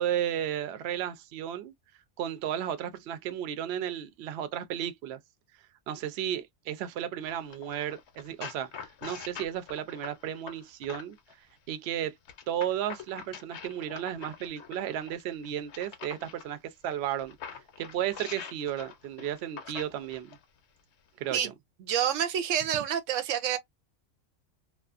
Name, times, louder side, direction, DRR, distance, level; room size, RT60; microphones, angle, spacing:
voice 1, 0.0-1.7 2.2-5.2 5.9-11.2 11.7-12.2 12.5-17.4 17.8-20.4 21.2-21.5, right 10 dB, 65° right, 0.7 m, -34 dB
sound 1, 7.3-11.3 12.3-16.5 17.0-20.4 21.2-21.4, left 7 dB, 65° left, 0.8 m, -45 dB
voice 2, 21.8-23.6, right 9 dB, 90° right, 1.0 m, -28 dB
2.3 x 2.3 x 2.4 m
omnidirectional pair, 1.3 m